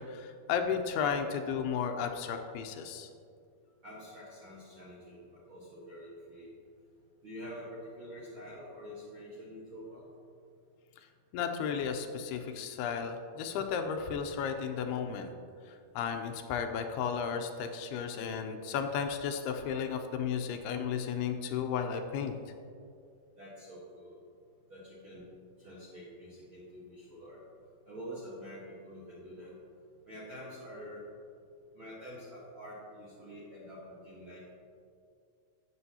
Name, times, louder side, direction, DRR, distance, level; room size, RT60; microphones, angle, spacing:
voice 1, 0.0-3.1 11.3-15.3 15.7-22.3, left 7 dB, 80° left, 6 dB, 2.5 m, -34 dB
voice 2, 3.8-6.5 7.2-10.0 23.4-24.2 24.7-25.2 25.6-27.4 27.9-29.5 30.0-31.0 31.7-34.6, equal, 60° right, -8 dB, 1.3 m, -47 dB
12.5 x 8.7 x 2.8 m, 2.4 s
omnidirectional pair, 4.7 m